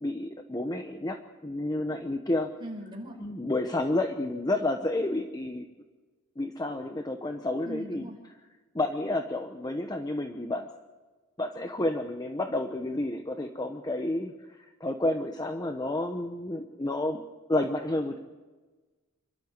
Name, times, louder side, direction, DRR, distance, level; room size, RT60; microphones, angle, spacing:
voice 1, 0.0-2.5 3.2-5.7 6.4-8.1 8.7-10.7 11.4-17.2 17.5-18.2, left 1 dB, 20° left, 5 dB, 1.0 m, -30 dB
voice 2, 2.6-3.2 7.6-8.1, equal, 20° right, 1 dB, 4.9 m, -39 dB
26.5 x 13.0 x 8.2 m, 1.3 s
head